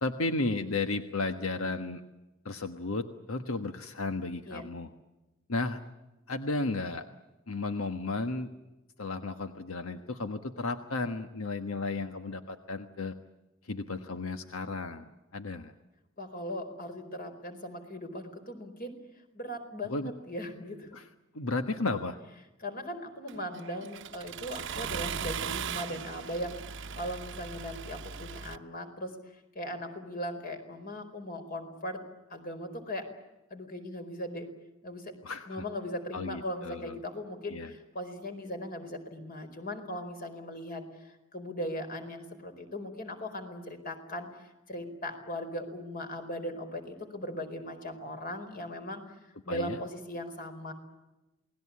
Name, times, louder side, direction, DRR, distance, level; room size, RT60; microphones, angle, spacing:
voice 1, 0.0-2.0 2.4-4.9 5.5-5.8 6.3-7.0 7.5-8.5 9.0-13.1 13.6-15.7 19.9-20.1 20.9-21.0 21.3-22.2 35.2-35.6 36.1-37.0 37.5-37.7 49.5-49.8, left 3 dB, 90° left, 8 dB, 1.4 m, -33 dB
voice 2, 16.2-18.9 19.3-20.9 22.6-29.2 29.5-32.0 32.3-33.1 33.5-34.5 34.8-35.1 35.5-44.3 44.7-50.7, equal, 45° left, 7 dB, 4.6 m, -39 dB
Accelerating revving vroom, 23.3-28.6, right 7 dB, 65° right, 0.9 m, -38 dB
28.5 x 20.0 x 8.6 m, 1.0 s
head